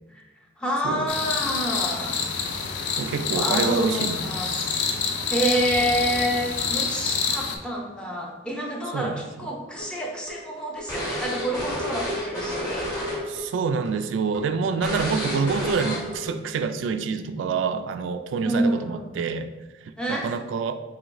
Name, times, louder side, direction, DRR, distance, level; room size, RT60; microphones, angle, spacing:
voice 1, 0.6-2.3 3.3-4.5 5.3-12.9 18.4-19.1 20.0-20.3, right 1 dB, 5° left, -2 dB, 0.5 m, -28 dB
sound 1, 1.1-7.5, left 5 dB, 70° left, 0.4 m, -27 dB
voice 2, 3.0-4.5 8.9-9.2 13.3-19.5 19.8-20.7, right 5 dB, 85° right, 9 dB, 0.3 m, -27 dB
sound 2, 9.8-13.4 13.7-13.9 14.3-14.4 14.8-16.3, equal, 20° left, 1.5 m, -30 dB
4.8 x 3.2 x 2.5 m, 1.1 s
head